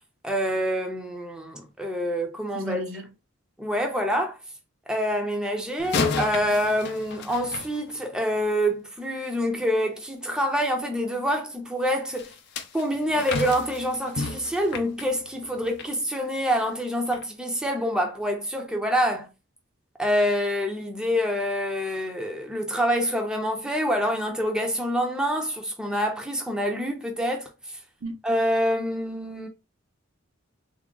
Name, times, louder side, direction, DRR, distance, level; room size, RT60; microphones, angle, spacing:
voice 1, 0.2-2.8 3.6-4.4 4.9-12.3 12.7-19.3 20.0-27.5 28.2-29.5, equal, 5° right, 0.6 m, -26 dB
voice 2, 2.5-3.0 15.6-15.7 28.0-28.2, right 2 dB, 65° right, 0.6 m, -34 dB
sound 1, 5.8-8.4 12.1-15.9 16.3-16.6 17.1-17.2, left 4 dB, 55° left, 0.5 m, -32 dB
3.6 x 2.0 x 3.7 m
head